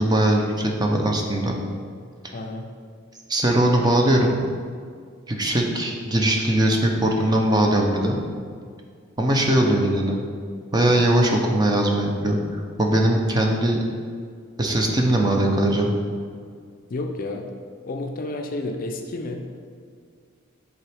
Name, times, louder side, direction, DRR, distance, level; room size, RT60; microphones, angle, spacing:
voice 1, 0.0-1.5 2.2-2.3 3.3-4.4 5.3-8.2 9.2-10.2 10.7-12.4 12.8-13.8 14.6-15.9, right 1 dB, 20° right, 1 dB, 0.5 m, -20 dB
voice 2, 2.3-2.7 16.9-17.5 17.9-19.6, left 2 dB, 40° left, 4 dB, 0.4 m, -31 dB
7.1 x 4.0 x 3.4 m, 2.1 s
head